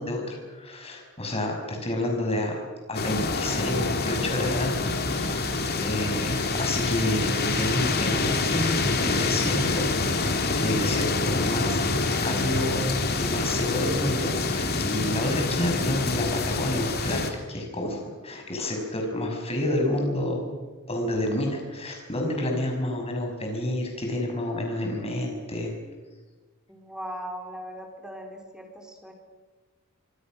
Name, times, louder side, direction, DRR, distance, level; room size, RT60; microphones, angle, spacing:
voice 1, 0.0-5.5 5.8-11.8 12.2-12.9 13.2-20.5 20.9-25.7, left 1 dB, 25° left, 2 dB, 6.2 m, -29 dB
sound 1, 2.9-17.3, left 3 dB, 45° left, 2.7 m, -26 dB
voice 2, 26.7-29.1, equal, 5° right, 2 dB, 4.2 m, -39 dB
26.0 x 25.0 x 6.4 m, 1.3 s
head